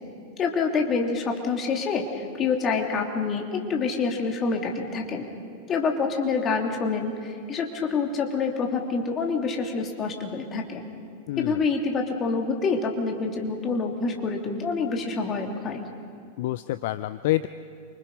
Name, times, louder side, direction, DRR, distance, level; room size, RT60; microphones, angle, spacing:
voice 1, 0.4-5.3 5.7-10.9 11.4-15.8, left 4 dB, 25° left, 2 dB, 3.0 m, -27 dB
voice 2, 11.3-11.6 16.4-17.5, left 16 dB, 50° left, 14 dB, 0.5 m, -27 dB
28.5 x 25.0 x 5.6 m, 2.4 s
figure-of-eight pair, 90°, 0 cm